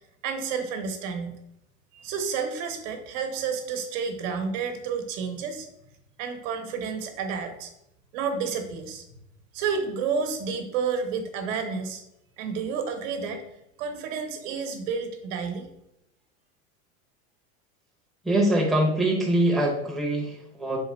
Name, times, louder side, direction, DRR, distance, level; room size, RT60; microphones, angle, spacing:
voice 1, 0.0-1.4 1.9-5.7 6.2-7.7 8.1-9.0 9.5-12.0 12.4-13.4 13.8-15.7, right 5 dB, 70° right, 6 dB, 1.0 m, -30 dB
voice 2, 18.2-20.8, right 1 dB, ahead, -3 dB, 0.7 m, -23 dB
3.7 x 2.9 x 4.2 m, 0.81 s
supercardioid pair, 120°, 40 cm